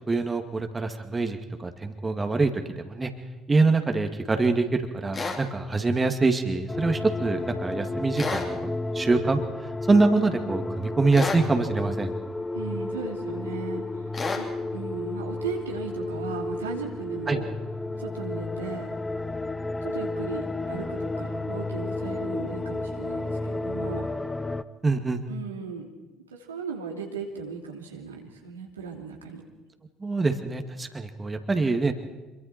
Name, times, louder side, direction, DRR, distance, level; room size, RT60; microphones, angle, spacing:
voice 1, 0.1-2.5 2.8-3.1 3.5-9.4 9.9-12.1 17.3-17.4 24.8-25.2 30.0-31.9, right 3 dB, 25° right, 6 dB, 2.3 m, -24 dB
sound 1, 5.1-5.4 8.1-8.5 11.1-11.5 14.1-14.5, left 4 dB, 35° left, 3.9 m, -30 dB
sound 2, 6.7-24.6, left 2 dB, 15° left, 0.9 m, -32 dB
voice 2, 12.5-14.1 14.4-17.5 18.0-18.9 19.8-24.1 25.3-25.9 26.3-29.4, right 6 dB, 90° right, 0 dB, 2.9 m, -37 dB
26.0 x 23.5 x 4.4 m, 1.2 s
hypercardioid pair, 60°, 0 cm